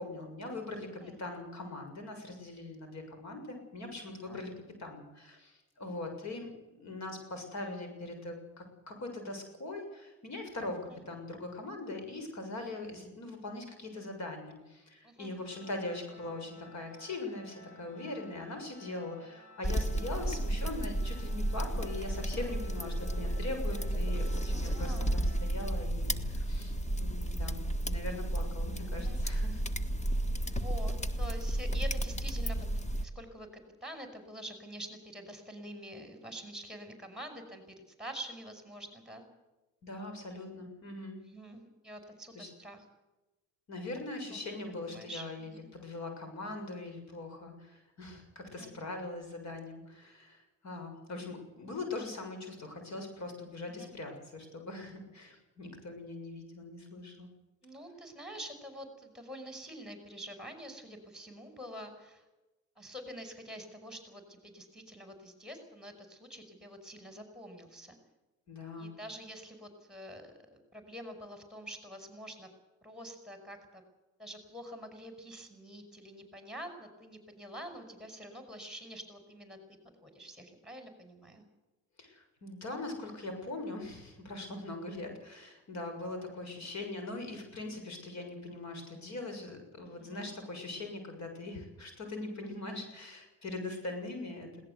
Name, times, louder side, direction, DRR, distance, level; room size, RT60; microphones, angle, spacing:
voice 1, 0.0-4.5 4.8-10.8 11.1-29.7 39.8-41.2 42.3-42.5 43.7-57.3 68.5-68.9 82.0-94.7, left 2 dB, 65° left, 5 dB, 7.0 m, -41 dB
Organ, 15.4-26.1, left 1 dB, 40° left, 6.9 m, -56 dB
sound 1, 19.6-33.1, right 1 dB, 25° left, 1.5 m, -32 dB
voice 2, 24.5-25.2 28.9-29.2 30.5-32.7 33.0-33.5 33.8-37.6 38.0-39.2 41.1-42.9 44.8-45.7 48.6-48.8 53.7-53.9 57.6-62.2 62.8-68.0 68.8-72.5 72.8-73.8 74.2-79.6 80.0-81.4 90.0-90.3, equal, ahead, 6 dB, 5.6 m, -46 dB
21.0 x 18.0 x 8.3 m, 1.0 s
cardioid pair, 90°, 30 cm